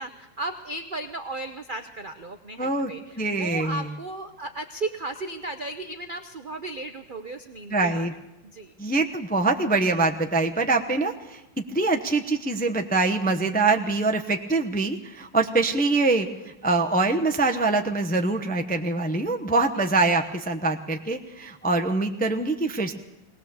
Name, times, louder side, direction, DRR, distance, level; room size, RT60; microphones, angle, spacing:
voice 1, 0.0-8.1 8.4-8.7 19.5-19.8, right 2 dB, 60° right, 8 dB, 0.5 m, -35 dB
voice 2, 2.6-2.9 3.2-3.9 7.7-8.1 8.8-11.4 11.7-16.3 16.6-22.9, right 3 dB, 10° left, 5 dB, 0.4 m, -24 dB
19.5 x 19.0 x 7.0 m, 0.94 s
omnidirectional pair, 2.0 m